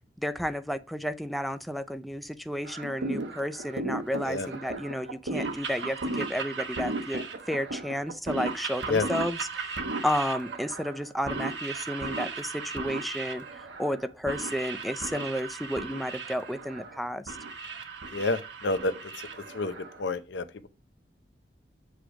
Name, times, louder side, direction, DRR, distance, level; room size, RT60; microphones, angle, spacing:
voice 1, 0.2-9.7 10.0-13.5 13.8-17.4, equal, ahead, 0.4 m, -32 dB
sound 1, 2.7-20.1, right 3 dB, 80° right, 1.1 m, -36 dB
voice 2, 18.1-18.9 19.5-19.7 20.0-20.4, left 3 dB, 85° left, 0.7 m, -28 dB
8.1 x 3.3 x 4.8 m
head